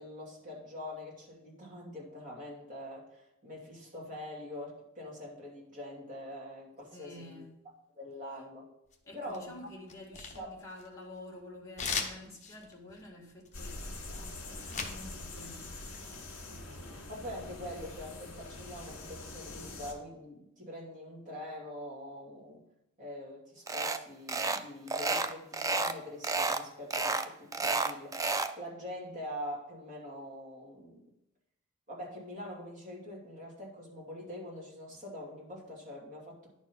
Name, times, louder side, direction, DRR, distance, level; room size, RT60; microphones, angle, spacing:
voice 1, 0.0-7.4 7.9-8.7 9.1-9.6 10.4-10.5 16.5-22.6 23.0-28.3 28.6-31.0 31.9-36.5, left 1 dB, 35° right, 2.7 m, -44 dB
voice 2, 6.9-7.5 9.0-16.1, left 1 dB, 15° left, 2.0 m, -49 dB
sound 1, 8.9-9.5 9.9-11.2 11.8-15.0 15.3-16.2, left 5 dB, 35° left, 1.1 m, -38 dB
sound 2, 13.5-19.9, left 2 dB, 60° left, 2.1 m, -44 dB
sound 3, 23.7-24.0 24.3-24.6 24.9-26.0 26.2-26.6 26.9-28.5, right 3 dB, 15° right, 0.3 m, -31 dB
10.5 x 4.5 x 5.5 m
head